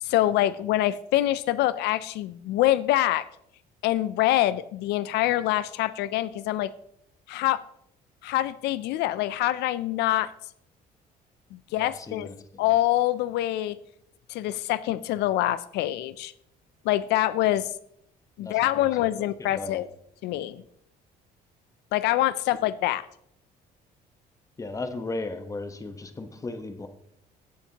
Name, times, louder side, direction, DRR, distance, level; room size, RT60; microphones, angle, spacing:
voice 1, 0.0-3.3 3.8-6.7 7.3-7.6 8.2-10.3 11.5-12.3 12.6-13.8 14.3-16.3 16.8-17.7 18.4-19.9 20.2-20.6 21.9-23.1, left 14 dB, 80° left, 16 dB, 0.4 m, -25 dB
voice 2, 11.8-12.6 18.4-18.9 19.2-19.8 24.6-26.9, left 2 dB, 20° left, 8 dB, 1.1 m, -36 dB
16.0 x 7.1 x 2.9 m, 0.74 s
cardioid pair, 110°, 17 cm